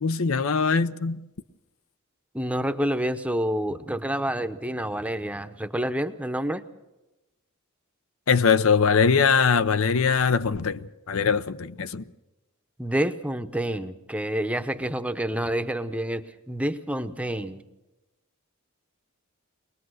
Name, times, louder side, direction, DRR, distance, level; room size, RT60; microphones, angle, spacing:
voice 1, 0.0-1.3 8.3-12.0, left 5 dB, 65° left, 0.7 m, -22 dB
voice 2, 2.3-6.6 12.8-17.6, right 1 dB, 5° right, 0.8 m, -28 dB
23.0 x 19.5 x 6.4 m
head